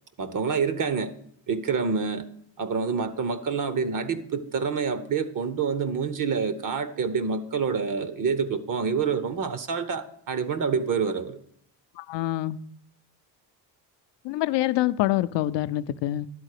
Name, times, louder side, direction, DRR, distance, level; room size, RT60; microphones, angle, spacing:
voice 1, 0.2-1.1 1.5-2.3 2.6-11.4, right 5 dB, 45° right, 13 dB, 0.8 m, -27 dB
voice 2, 12.0-12.6 14.2-16.3, left 15 dB, 70° left, 14 dB, 0.6 m, -26 dB
11.0 x 4.0 x 6.6 m, 0.67 s
cardioid pair, 85°, 45 cm